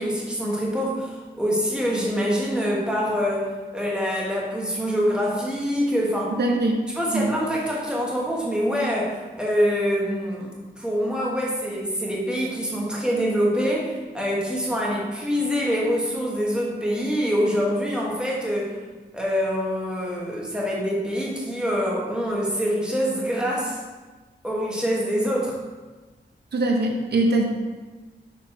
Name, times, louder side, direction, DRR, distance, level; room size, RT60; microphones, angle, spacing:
voice 1, 0.0-6.3 7.0-18.8 19.1-23.8 24.4-25.6, equal, 5° right, -4 dB, 1.2 m, -25 dB
voice 2, 6.3-6.7 7.1-7.3 26.5-27.4, right 2 dB, 70° right, 2 dB, 0.9 m, -22 dB
6.7 x 4.0 x 4.3 m, 1.3 s
wide cardioid pair, 165°, 18 cm